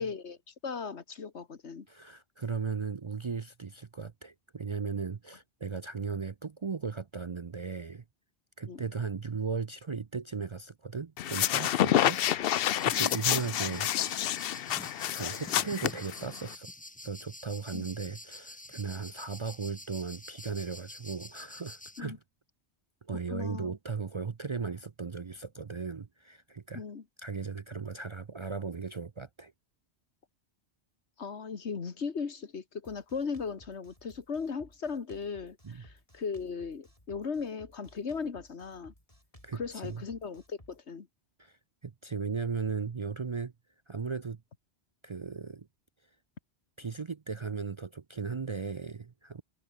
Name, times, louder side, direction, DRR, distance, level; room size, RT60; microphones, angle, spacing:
voice 1, 0.0-1.9 8.7-8.8 11.9-12.0 12.9-13.1 17.7-17.9 22.0-22.2 23.3-23.8 26.7-27.0 31.2-38.9 39.5-41.1, left 5 dB, 80° left, 1.9 m, -37 dB
voice 2, 1.9-8.0 8.6-12.2 12.8-14.3 15.1-16.7 17.0-22.2 23.1-26.8 27.2-29.5 35.6-35.8 39.4-40.0 41.4-41.6 41.8-43.5 43.9-44.4 45.0-45.7 46.8-49.4, right 5 dB, 40° right, 0.5 m, -37 dB
sound 1, 11.2-16.5, left 12 dB, 65° left, 0.7 m, -28 dB
sound 2, 12.6-22.0, left 1 dB, 10° left, 0.7 m, -48 dB
Drum kit, 32.8-40.8, left 1 dB, 30° left, 7.6 m, -58 dB
omnidirectional pair, 1.1 m